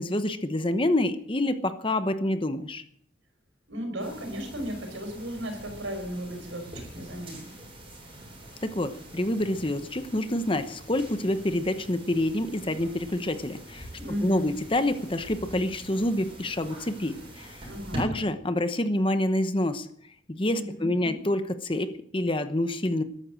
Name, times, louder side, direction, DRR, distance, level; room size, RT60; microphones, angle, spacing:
voice 1, 0.0-2.8 8.6-13.9 14.2-17.7 17.9-19.9 20.3-23.0, left 1 dB, 25° left, 10 dB, 0.9 m, -27 dB
voice 2, 3.7-7.5 14.0-14.6 17.7-18.1 20.5-21.2, equal, 75° right, 6 dB, 5.0 m, -35 dB
sound 1, 4.0-18.0, right 1 dB, 30° right, 7.9 m, -44 dB
14.5 x 12.0 x 7.6 m, 0.66 s
head